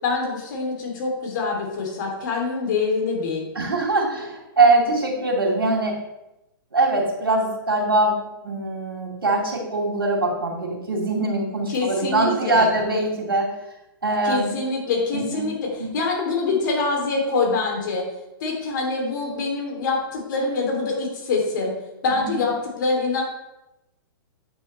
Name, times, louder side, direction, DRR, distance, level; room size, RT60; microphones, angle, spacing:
voice 1, 0.0-3.5 11.7-12.7 14.2-18.1 18.4-21.7 22.0-23.2, left 3 dB, 60° left, 0 dB, 3.1 m, -25 dB
voice 2, 3.5-6.0 6.7-13.5 14.0-14.6 15.1-15.5 15.8-15.9 22.1-22.4, right 2 dB, 90° right, -3 dB, 2.7 m, -22 dB
9.5 x 6.3 x 3.3 m, 0.92 s
hypercardioid pair, 115°, 12 cm